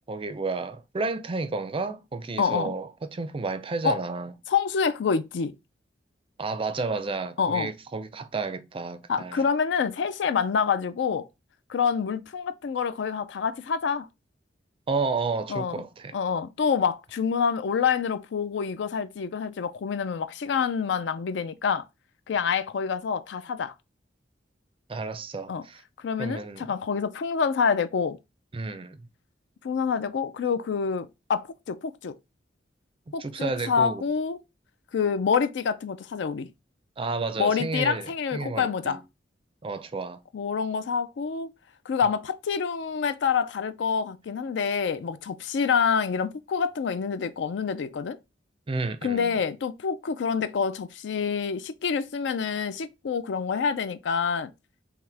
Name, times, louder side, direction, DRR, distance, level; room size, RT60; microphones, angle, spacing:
voice 1, 0.1-4.3 6.4-9.5 14.9-16.2 24.9-25.8 26.2-26.7 28.5-29.0 33.2-34.0 37.0-39.0 39.6-40.2 48.7-49.4, right 3 dB, 30° right, 0.4 m, -31 dB
voice 2, 2.4-2.8 3.8-4.0 4.5-5.5 7.4-7.7 9.1-11.2 11.7-14.1 15.5-15.8 16.1-21.9 22.3-23.7 25.5-25.6 26.0-28.2 29.6-32.1 33.1-34.4 34.9-36.5 37.4-39.0 40.3-41.5 41.9-48.2 49.0-54.5, left 6 dB, 70° left, 0.4 m, -27 dB
5.7 x 2.1 x 3.3 m
head